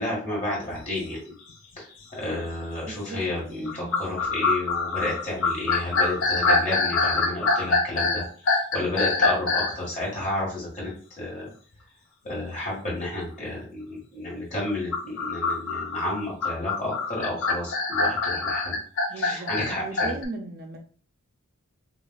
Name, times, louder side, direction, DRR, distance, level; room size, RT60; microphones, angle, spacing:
voice 1, 0.0-1.3 1.8-1.9 2.1-8.2 8.5-11.5 12.2-18.8 19.1-20.2, left 1 dB, 30° left, -4 dB, 1.7 m, -31 dB
sound 1, 0.7-0.9 1.5-1.6 2.2-2.5 3.7-9.8 14.7-20.2, left 3 dB, 65° left, 0.7 m, -24 dB
voice 2, 2.9-4.0 19.1-20.8, right 2 dB, 45° right, 3 dB, 0.4 m, -38 dB
5.2 x 2.4 x 2.3 m, 0.43 s
head